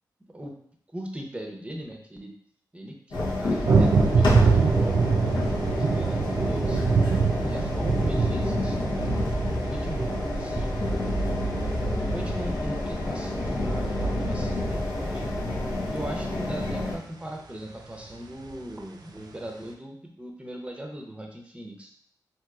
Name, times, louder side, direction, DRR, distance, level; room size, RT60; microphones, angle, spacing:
voice 1, 0.9-2.3 2.7-6.8 7.4-9.1 9.7-10.7 12.1-15.2 15.9-22.0, right 1 dB, 15° right, 1 dB, 0.7 m, -39 dB
sound 1, 3.1-17.0, left 1 dB, 80° left, 0.7 m, -29 dB
sound 2, 3.6-15.5 18.1-18.2 18.4-18.5, right 4 dB, 60° right, 0.4 m, -25 dB
2.9 x 2.8 x 2.3 m, 0.65 s
cardioid pair, 55°, 8 cm